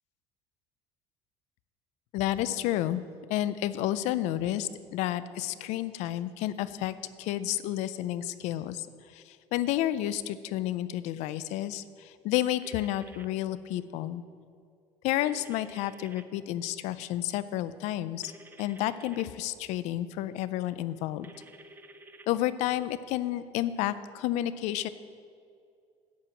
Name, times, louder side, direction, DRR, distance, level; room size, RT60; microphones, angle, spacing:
voice 1, 2.1-3.0 3.3-8.9 9.1-14.2 15.0-18.3 18.6-21.3 22.3-24.9, left 13 dB, 75° left, 15 dB, 0.4 m, -31 dB
sound 1, 12.6-13.2 15.2-16.2 18.2-19.2 21.2-22.3, right 1 dB, 15° right, 0.5 m, -51 dB
11.0 x 4.7 x 7.7 m, 2.3 s
cardioid pair, 135°, 12 cm